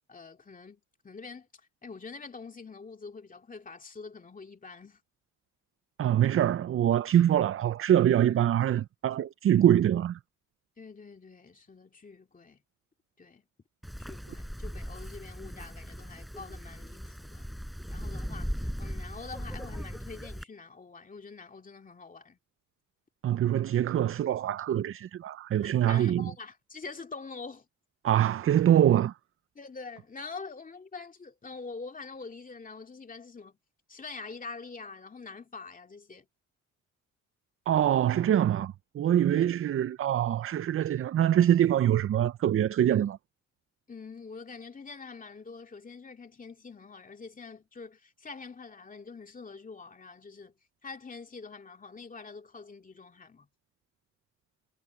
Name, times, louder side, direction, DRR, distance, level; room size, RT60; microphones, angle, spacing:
voice 1, 0.1-5.0 10.8-12.6 13.2-13.4 14.0-17.5 17.9-22.4 25.8-27.7 29.5-33.6 33.9-36.3 39.3-39.5 43.9-50.5 50.8-53.5, left 4 dB, 25° left, 2.3 m, -45 dB
voice 2, 6.0-10.2 23.2-26.3 28.0-29.1 37.7-43.2, right 11 dB, 45° right, 0.5 m, -24 dB
Wind, 13.8-20.4, equal, ahead, 4.3 m, -38 dB
cardioid pair, 90°, 30 cm